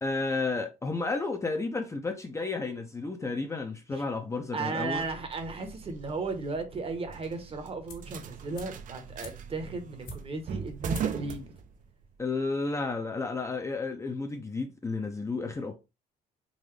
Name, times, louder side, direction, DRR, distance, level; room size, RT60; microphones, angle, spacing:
voice 1, 0.0-5.1 12.2-15.8, left 3 dB, 15° left, 0.6 m, -32 dB
voice 2, 4.5-11.4, right 3 dB, 35° right, 1.0 m, -35 dB
sound 1, 4.9-12.2, right 7 dB, 50° right, 0.6 m, -40 dB
sound 2, 7.9-8.2 8.5-10.5 10.9-11.3 11.6-11.7, left 2 dB, 60° left, 1.3 m, -47 dB
3.9 x 2.6 x 3.2 m
cardioid pair, 110°, 17 cm